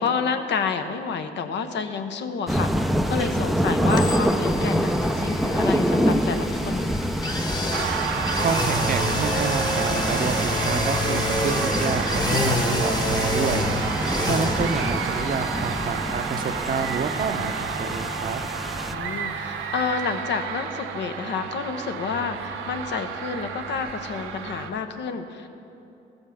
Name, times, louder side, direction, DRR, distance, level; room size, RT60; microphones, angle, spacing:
voice 1, 0.0-6.9 17.4-17.5 18.9-25.5, left 5 dB, 65° left, 7 dB, 0.8 m, -29 dB
sound 1, 2.5-18.9, equal, ahead, 0.4 m, -26 dB
sound 2, 3.9-19.7 20.0-20.1, left 2 dB, 20° left, 1.2 m, -29 dB
sound 3, 7.7-24.7, right 7 dB, 85° right, 0.8 m, -31 dB
voice 2, 8.4-13.7 14.3-18.4, right 5 dB, 45° right, 8 dB, 0.7 m, -29 dB
13.5 x 5.4 x 7.0 m, 2.8 s
cardioid pair, 90°, 20 cm